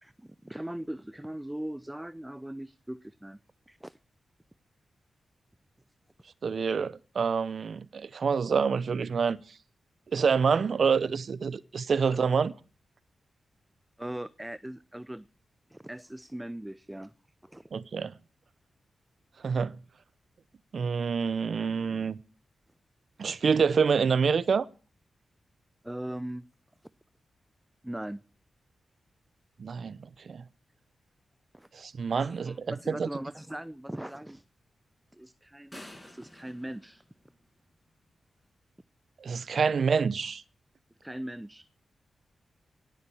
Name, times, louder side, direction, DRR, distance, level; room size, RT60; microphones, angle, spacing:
voice 1, 0.0-3.4 3.7-3.9 12.1-12.2 14.0-15.3 15.7-17.1 17.4-17.7 25.8-26.5 27.8-28.2 31.5-31.7 32.2-34.4 35.1-37.0 41.0-41.6, right 1 dB, 10° right, 0.6 m, -40 dB
voice 2, 6.4-9.4 10.1-12.5 17.7-18.1 19.4-19.8 20.7-22.2 23.2-24.7 29.6-30.4 31.7-33.1 39.2-40.4, right 5 dB, 65° right, 0.7 m, -27 dB
sound 1, 35.7-37.9, left 1 dB, 10° left, 7.0 m, -50 dB
18.0 x 7.7 x 7.1 m
supercardioid pair, 40°, 0 cm